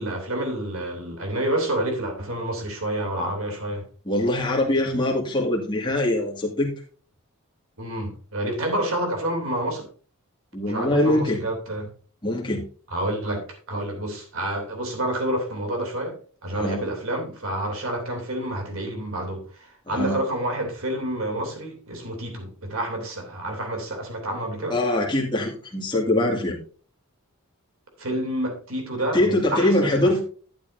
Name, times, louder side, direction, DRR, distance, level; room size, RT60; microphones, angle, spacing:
voice 1, 0.0-3.9 7.8-9.9 10.7-11.9 12.9-16.2 16.4-24.8 28.0-30.2, right 1 dB, 65° right, 3.0 m, -29 dB
voice 2, 4.1-6.7 10.5-11.4 12.2-12.6 16.5-16.8 20.0-20.2 24.7-26.6 29.1-30.2, left 1 dB, 20° left, 2.0 m, -23 dB
11.5 x 9.1 x 2.6 m
head